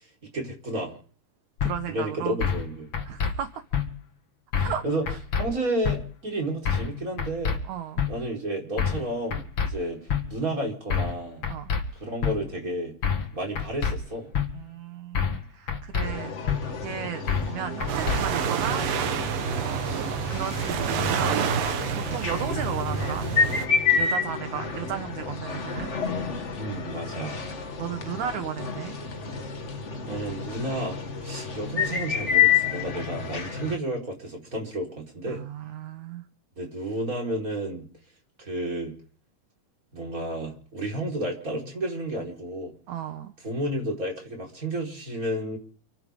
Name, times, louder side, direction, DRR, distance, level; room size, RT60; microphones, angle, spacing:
voice 1, 0.3-1.0 1.9-2.9 4.5-5.1 5.4-7.6 8.1-11.4 11.9-12.9 13.3-14.3 26.6-27.6 30.1-35.4 36.6-37.8 38.4-38.9 39.9-42.7 43.4-45.6, right 1 dB, 25° right, 0 dB, 4.8 m, -31 dB
sound 1, 1.6-1.7 2.4-2.7 2.9-3.3 3.7-3.8 4.5-4.8 5.1-5.4 5.8-6.0 6.6-6.9 7.2-7.6 8.0-8.1 8.8-9.0 9.3-9.7 10.1-10.2 10.9-11.2 11.4-11.8 12.2-12.3 13.0-13.3 13.6-13.9 14.3-14.5 15.1-15.4 15.7-16.1 16.5-16.6 17.3-17.5 17.8-18.2, left 7 dB, 45° left, 2.5 m, -26 dB
voice 2, 1.6-2.4 3.1-3.6 4.6-4.8 7.7-8.0 11.5-11.7 14.5-18.9 19.6-19.8 20.3-21.5 21.9-23.3 24.0-25.9 27.5-29.0 35.3-36.2 42.9-43.3, right 9 dB, 65° right, 8 dB, 2.4 m, -34 dB
sound 2, 16.0-33.8, left 6 dB, 85° left, 0.6 m, -29 dB
sound 3, 17.9-23.7, right 9 dB, 90° right, 3.0 m, -29 dB
30.0 x 11.5 x 3.7 m, 0.43 s
omnidirectional pair, 3.8 m